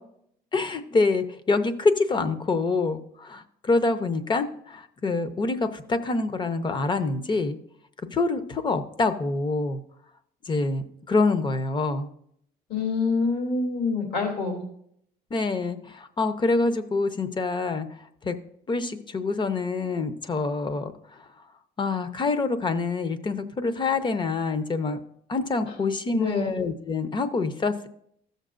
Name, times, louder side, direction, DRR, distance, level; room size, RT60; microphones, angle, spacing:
voice 1, 0.5-7.6 8.1-9.8 10.5-12.1 15.3-18.4 18.7-21.3 21.8-25.0 25.3-27.9, left 3 dB, 30° left, 11 dB, 0.7 m, -26 dB
voice 2, 12.7-14.6 26.1-26.6, left 4 dB, 70° left, 0 dB, 2.7 m, -26 dB
14.5 x 6.6 x 2.5 m, 0.70 s
cardioid pair, 110°, 17 cm